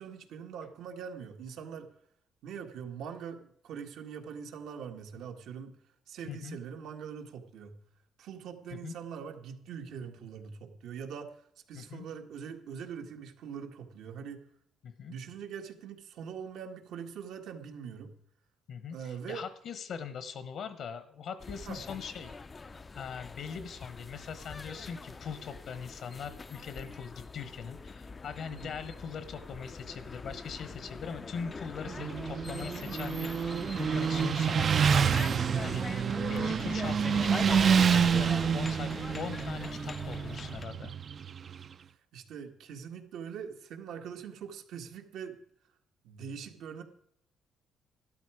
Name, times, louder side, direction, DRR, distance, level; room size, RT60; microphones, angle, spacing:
voice 1, 0.0-1.9 2.4-5.7 6.1-7.8 8.2-11.4 11.7-14.4 15.1-18.1 18.9-19.4 21.6-21.8 28.5-28.7 41.8-45.4 46.0-46.8, right 7 dB, 80° right, 5 dB, 1.7 m, -43 dB
voice 2, 6.2-6.6 8.7-8.9 11.7-12.1 14.8-15.1 18.7-22.3 22.9-40.9, left 6 dB, 65° left, 12 dB, 1.1 m, -41 dB
sound 1, 21.4-40.7, left 4 dB, 25° left, 0.5 m, -43 dB
Motorcycle, 31.9-41.6, right 7 dB, 45° right, 0.5 m, -28 dB
12.5 x 12.5 x 4.9 m, 0.71 s
cardioid pair, 110°, 0 cm